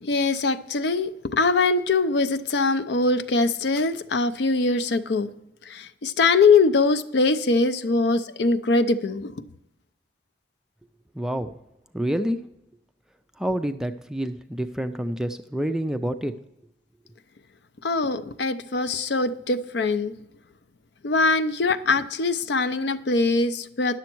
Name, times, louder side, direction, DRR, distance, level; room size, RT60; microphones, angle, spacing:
voice 1, 0.0-5.3 5.7-9.3 17.8-20.1 21.0-24.0, left 3 dB, 60° left, 0.5 m, -22 dB
voice 2, 11.1-11.6 11.9-12.4 13.4-16.4, equal, 5° right, 0.3 m, -28 dB
10.5 x 7.0 x 4.5 m
head